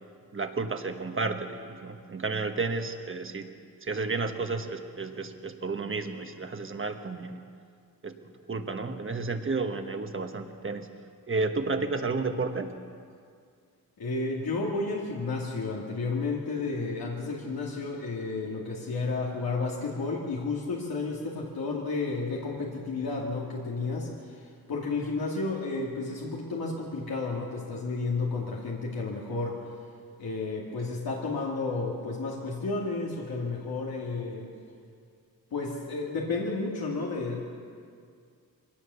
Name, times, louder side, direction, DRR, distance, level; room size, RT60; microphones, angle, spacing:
voice 1, 0.3-3.5 3.8-7.4 8.0-8.1 8.5-10.9 11.3-12.7, right 3 dB, 35° right, 6 dB, 1.3 m, -32 dB
voice 2, 14.0-29.6 30.2-34.5 35.5-37.5, left 3 dB, 85° left, -3 dB, 2.6 m, -32 dB
23.5 x 17.5 x 7.0 m, 2.2 s
wide cardioid pair, 155°, 35 cm